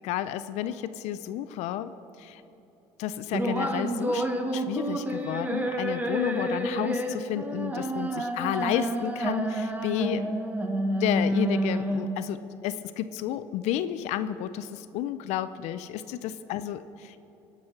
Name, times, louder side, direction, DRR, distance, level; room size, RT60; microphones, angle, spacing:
voice 1, 0.0-1.9 2.2-2.4 3.0-4.3 4.5-10.2 11.0-17.2, left 11 dB, 70° left, 13 dB, 0.4 m, -31 dB
sound 1, 3.3-12.3, right 1 dB, 15° right, 1.1 m, -29 dB
16.0 x 6.0 x 5.7 m, 2.9 s
supercardioid pair, 90°, 12 cm